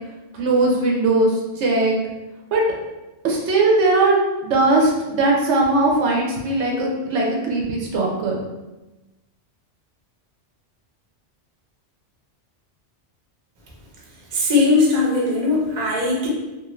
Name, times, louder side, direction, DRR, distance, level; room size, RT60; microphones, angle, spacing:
voice 1, 0.3-2.0 2.5-2.6 3.2-8.4, right 2 dB, 75° right, -1 dB, 0.9 m, -19 dB
voice 2, 14.3-16.3, left 3 dB, 45° right, -3 dB, 0.7 m, -19 dB
2.5 x 2.5 x 3.0 m, 1.1 s
omnidirectional pair, 1.2 m